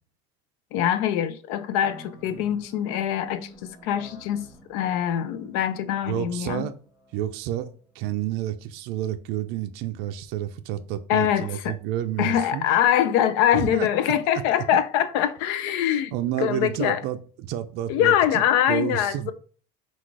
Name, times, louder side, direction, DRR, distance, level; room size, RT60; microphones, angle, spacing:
voice 1, 0.7-6.6 11.1-11.8 12.2-16.1 16.4-17.0 17.9-19.3, left 10 dB, 80° left, 0.5 m, -23 dB
sound 1, 1.8-8.1, left 1 dB, 10° left, 1.1 m, -48 dB
voice 2, 6.1-6.7 7.1-7.7 8.0-12.6 13.5-13.9 16.1-19.3, right 12 dB, 55° right, 0.4 m, -30 dB
3.9 x 2.4 x 4.6 m
cardioid pair, 170°, 20 cm